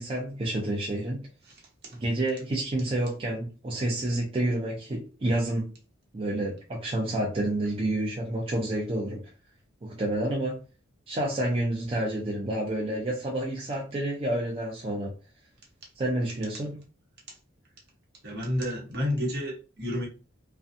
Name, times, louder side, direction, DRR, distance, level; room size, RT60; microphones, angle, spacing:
voice 1, 0.0-1.3 2.0-5.7 6.1-9.2 9.8-10.6 11.1-15.1 16.0-16.7, right 1 dB, 30° right, 0.5 m, -29 dB
voice 2, 1.4-2.0 17.3-17.4 18.2-20.1, left 1 dB, 55° right, 1.0 m, -31 dB
2.5 x 2.2 x 2.5 m
head